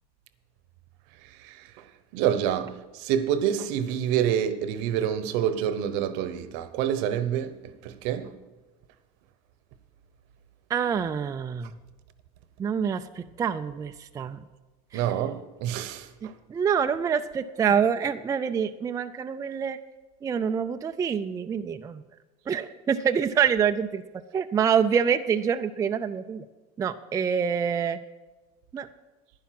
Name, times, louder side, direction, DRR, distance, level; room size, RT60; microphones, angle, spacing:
voice 1, 1.2-8.4 14.9-16.3, right 9 dB, 65° right, 1.0 m, -28 dB
voice 2, 10.7-11.7 12.6-14.4 16.5-19.8 20.2-22.0 22.5-24.0 24.3-26.4 26.8-28.0 28.7-28.9, right 7 dB, 15° right, 0.4 m, -26 dB
10.5 x 10.5 x 5.9 m
supercardioid pair, 130°, 20 cm